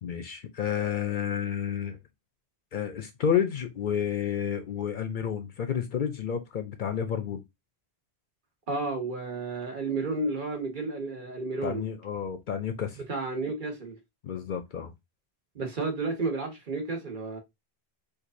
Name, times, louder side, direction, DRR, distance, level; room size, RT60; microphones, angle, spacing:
voice 1, 0.0-2.0 2.7-7.4 11.6-13.0 14.2-14.9, left 8 dB, 60° left, 0.6 m, -30 dB
voice 2, 8.7-11.8 13.1-13.9 15.5-17.4, right 3 dB, 55° right, 1.2 m, -32 dB
4.5 x 2.5 x 2.5 m
omnidirectional pair, 1.1 m